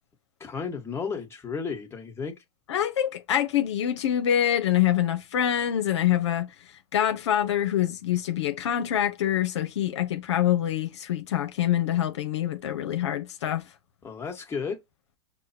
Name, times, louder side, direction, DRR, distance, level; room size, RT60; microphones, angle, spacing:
voice 1, 0.4-2.3 14.0-14.8, left 5 dB, 15° left, 1.4 m, -33 dB
voice 2, 2.7-6.5 6.9-13.7, left 11 dB, 80° left, 0.7 m, -25 dB
6.2 x 2.1 x 2.7 m
hypercardioid pair, 120°, 15 cm